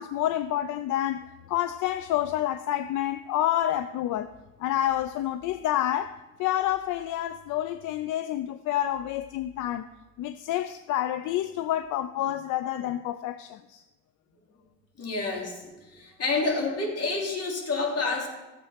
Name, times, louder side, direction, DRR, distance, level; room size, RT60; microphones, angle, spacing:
voice 1, 0.0-4.3 4.6-9.9 10.2-13.8, left 12 dB, 85° left, 0.5 m, -28 dB
voice 2, 15.0-18.3, left 3 dB, 55° left, 3.2 m, -29 dB
13.5 x 7.5 x 5.8 m
cardioid pair, 90°, 30 cm